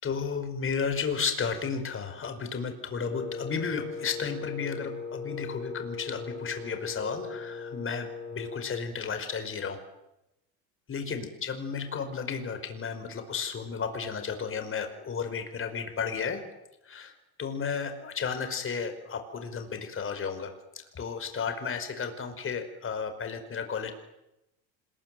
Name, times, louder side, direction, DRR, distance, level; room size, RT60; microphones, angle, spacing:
voice 1, 0.0-9.8 10.9-16.4 16.8-17.1 17.4-23.9, left 6 dB, 30° left, 8 dB, 5.2 m, -33 dB
Wind instrument woodwind instrument, 3.0-8.8, left 4 dB, 85° left, 6.9 m, -39 dB
26.5 x 21.5 x 9.2 m, 0.90 s
supercardioid pair, 125°, 43 cm